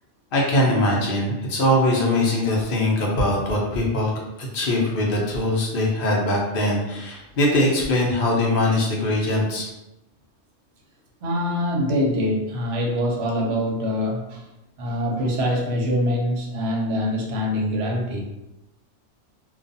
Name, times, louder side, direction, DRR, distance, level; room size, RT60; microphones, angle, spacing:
voice 1, 0.3-4.1 4.4-9.7, left 1 dB, 55° left, -2 dB, 0.7 m, -21 dB
voice 2, 11.2-14.4 14.8-18.2, equal, 65° right, -1 dB, 0.8 m, -24 dB
2.4 x 2.2 x 2.6 m, 0.91 s
omnidirectional pair, 1.3 m